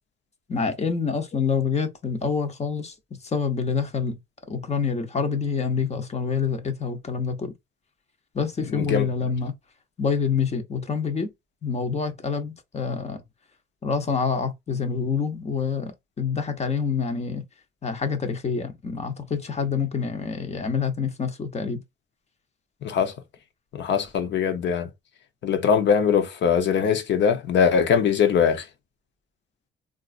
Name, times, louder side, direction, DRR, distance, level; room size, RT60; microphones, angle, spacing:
voice 1, 0.5-2.9 3.2-4.2 4.5-7.5 8.3-9.5 10.0-11.3 11.6-13.2 13.8-15.9 16.2-17.4 17.8-21.8, left 5 dB, 35° left, 0.8 m, -26 dB
voice 2, 8.7-9.0 22.8-23.1 23.7-24.9 25.4-28.6, left 7 dB, 65° left, 0.8 m, -21 dB
3.7 x 2.5 x 2.5 m
cardioid pair, 90°, 20 cm